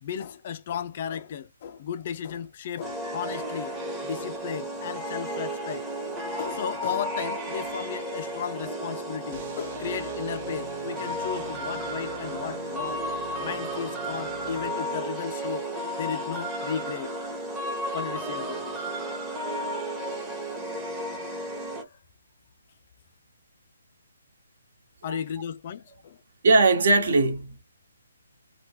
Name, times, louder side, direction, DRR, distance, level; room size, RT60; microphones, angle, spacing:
voice 1, 0.0-3.7 4.0-5.8 6.4-13.0 13.4-15.7 16.0-17.1 17.9-18.8 21.8-22.0 25.0-26.2, left 8 dB, 40° left, 0.3 m, -35 dB
sound 1, 2.8-21.8, right 1 dB, 10° right, 0.8 m, -33 dB
sound 2, 9.3-15.2, right 5 dB, 40° right, 0.6 m, -44 dB
voice 2, 26.4-27.6, right 3 dB, 60° right, 1.1 m, -20 dB
3.0 x 2.2 x 2.9 m
hypercardioid pair, 150°, 0 cm